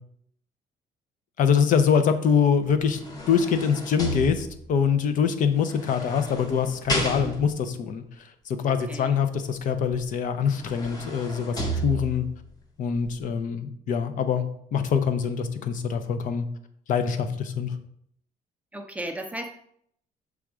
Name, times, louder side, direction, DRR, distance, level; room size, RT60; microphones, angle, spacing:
voice 1, 1.4-3.0 3.3-8.0 8.5-12.2 12.8-16.5 16.9-17.8, left 7 dB, 60° left, 9 dB, 0.6 m, -24 dB
sound 1, 2.6-4.8 5.7-7.7 9.9-10.0 10.4-12.4 13.0-13.1, right 1 dB, 25° left, 1.0 m, -33 dB
voice 2, 7.0-7.4 8.7-9.2 11.4-11.9 18.7-19.5, right 1 dB, 10° right, 4 dB, 0.5 m, -37 dB
6.2 x 3.5 x 4.8 m, 0.68 s
cardioid pair, 160°, 15 cm